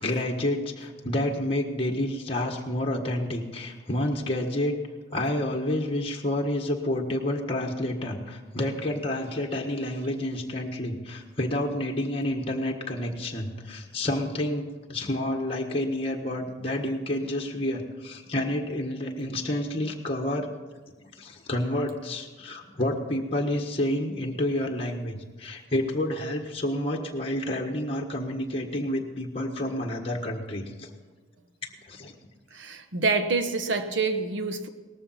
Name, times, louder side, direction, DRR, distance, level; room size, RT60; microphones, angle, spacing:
voice 1, 0.0-4.7 5.1-20.5 20.9-30.9 31.6-32.1, left 1 dB, 30° left, 1 dB, 1.6 m, -29 dB
voice 2, 32.5-34.7, right 4 dB, 85° right, 8 dB, 1.2 m, -27 dB
18.5 x 14.0 x 4.3 m, 1.3 s
head